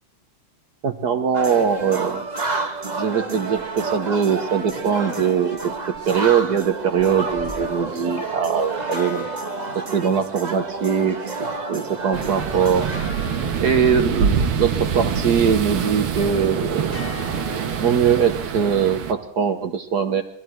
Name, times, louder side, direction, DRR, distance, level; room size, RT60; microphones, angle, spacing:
voice 1, 0.8-2.2 3.0-5.7 6.1-9.2 9.7-11.2 11.7-12.9 13.6-17.0 17.8-20.2, right 7 dB, 50° right, 8 dB, 1.6 m, -21 dB
sound 1, 1.3-13.1, right 3 dB, 25° right, 1.1 m, -30 dB
sound 2, 4.6-6.5 7.4-11.1 11.4-15.0 15.4-18.8, left 4 dB, 60° left, 4.0 m, -41 dB
sound 3, 12.1-19.1, right 7 dB, 80° right, 2.1 m, -25 dB
21.0 x 14.5 x 4.5 m, 0.72 s
omnidirectional pair, 2.4 m